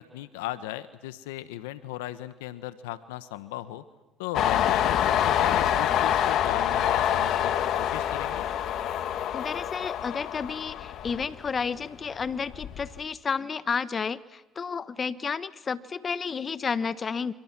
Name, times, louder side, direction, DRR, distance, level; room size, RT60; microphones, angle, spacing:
voice 1, 0.0-3.8 4.2-8.4, left 14 dB, 90° left, 13 dB, 1.2 m, -37 dB
Train, 4.3-11.8 12.1-13.0, left 10 dB, 65° left, 1.5 m, -26 dB
voice 2, 9.3-17.3, left 5 dB, 40° left, 15 dB, 1.1 m, -31 dB
29.0 x 26.0 x 6.1 m, 1.1 s
supercardioid pair, 70°, 0 cm